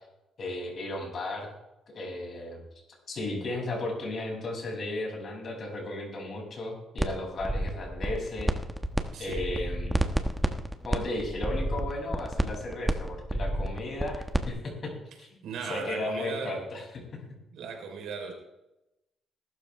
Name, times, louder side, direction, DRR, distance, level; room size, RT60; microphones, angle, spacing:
voice 1, 0.4-1.5 1.9-2.6 3.1-8.5 9.2-10.2 10.8-14.9 15.2-16.8 17.1-17.2, left 2 dB, 50° left, 0 dB, 6.2 m, -35 dB
sound 1, 7.0-7.1 7.4-9.0 9.3-14.5, right 1 dB, 5° right, 1.2 m, -29 dB
voice 2, 9.1-9.5 15.4-16.6 17.5-18.3, right 5 dB, 80° right, 3 dB, 3.6 m, -37 dB
20.5 x 12.5 x 3.3 m, 0.92 s
cardioid pair, 90°, 0 cm